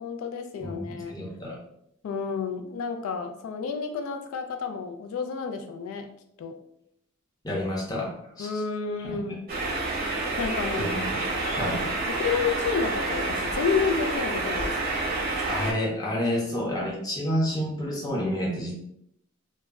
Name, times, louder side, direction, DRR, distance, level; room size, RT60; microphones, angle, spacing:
voice 1, 0.0-1.2 2.0-6.1 6.4-6.6 8.4-9.4 10.4-10.9 12.1-14.9, left 5 dB, 90° left, 7 dB, 0.3 m, -30 dB
voice 2, 0.6-1.6 7.4-8.6 9.1-9.2 10.8-11.1 11.5-11.9 15.5-18.7, left 1 dB, 20° left, -3 dB, 0.6 m, -29 dB
sound 1, 9.5-15.7, right 2 dB, 45° right, 0.6 m, -28 dB
2.1 x 2.0 x 3.4 m, 0.74 s
head